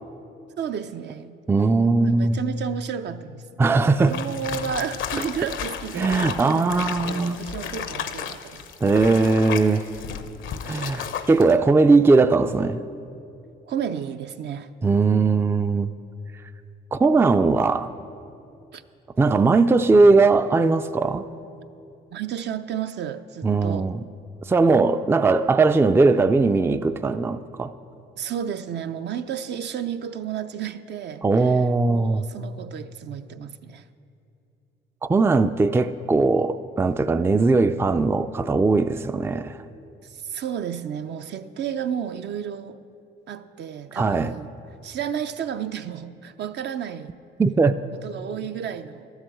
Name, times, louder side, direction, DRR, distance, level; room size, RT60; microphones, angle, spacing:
voice 1, 0.6-1.3 1.9-8.6 13.7-14.7 18.7-18.8 22.1-23.9 28.2-31.2 31.9-33.8 40.0-42.8 43.3-44.5 44.8-47.1 48.0-49.1, right 8 dB, 60° right, 0.6 m, -32 dB
voice 2, 1.5-2.4 3.6-4.1 6.0-7.4 8.8-9.8 10.6-12.8 14.8-15.9 16.9-17.9 19.2-21.2 23.4-24.0 24.5-27.7 31.2-32.3 35.0-39.6 44.0-44.3 47.4-47.7, right 3 dB, 10° right, 0.3 m, -19 dB
sound 1, 4.1-11.5, left 8 dB, 75° left, 0.8 m, -33 dB
12.5 x 8.1 x 7.7 m
cardioid pair, 90°, 20 cm